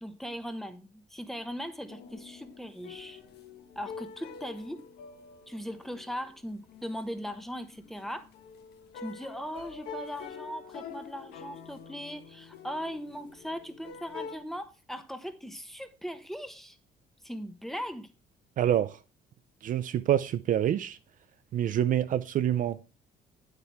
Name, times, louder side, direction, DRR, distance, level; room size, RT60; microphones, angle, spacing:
voice 1, 0.0-3.2 3.7-4.8 5.5-8.3 8.9-16.8 17.2-18.1, equal, ahead, 1.1 m, -39 dB
sound 1, 1.9-14.4, left 6 dB, 75° left, 1.4 m, -46 dB
voice 2, 18.6-19.0 19.6-21.0 21.5-23.0, right 11 dB, 50° right, 0.5 m, -27 dB
9.1 x 8.1 x 3.6 m
cardioid pair, 110°, 17 cm